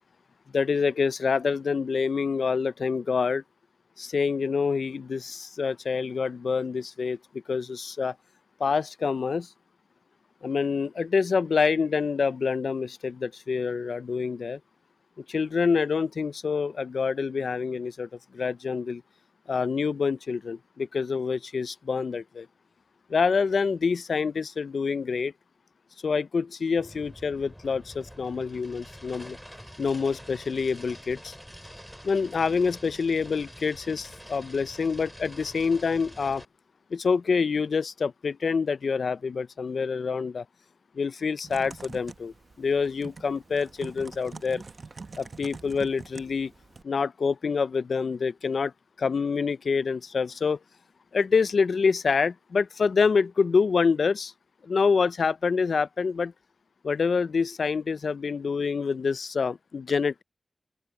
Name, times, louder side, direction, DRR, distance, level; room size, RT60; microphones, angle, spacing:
voice 1, 0.5-3.4 4.0-8.1 8.6-9.5 10.4-14.6 15.2-19.0 19.5-22.5 23.1-25.3 26.0-29.4 29.8-31.4 32.0-36.4 36.9-40.4 40.9-44.6 45.2-46.5 46.8-48.7 49.0-50.6 51.1-54.3 54.6-56.3 56.8-60.2, left 5 dB, 85° left, 0.4 m, -26 dB
sound 1, 26.8-36.4, equal, ahead, 3.4 m, -46 dB
Typing, 41.4-46.8, right 4 dB, 60° right, 1.0 m, -44 dB
open air
wide cardioid pair, 65°, 0 cm